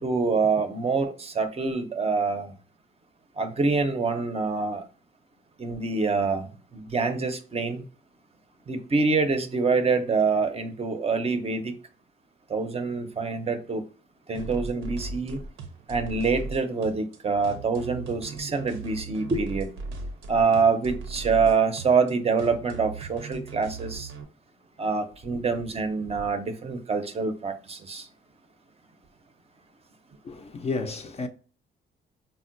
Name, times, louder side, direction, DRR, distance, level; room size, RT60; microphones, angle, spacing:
voice 1, 0.0-2.5 3.4-4.8 5.6-7.8 8.7-11.7 12.5-13.8 14.3-15.4 15.9-19.7 20.3-24.1 24.8-28.0, right 4 dB, 30° right, 0.5 m, -26 dB
sound 1, 14.3-24.2, right 3 dB, 80° right, 0.6 m, -38 dB
voice 2, 30.2-31.3, left 3 dB, 30° left, 0.4 m, -31 dB
3.6 x 2.1 x 2.5 m
cardioid pair, 90°, 20 cm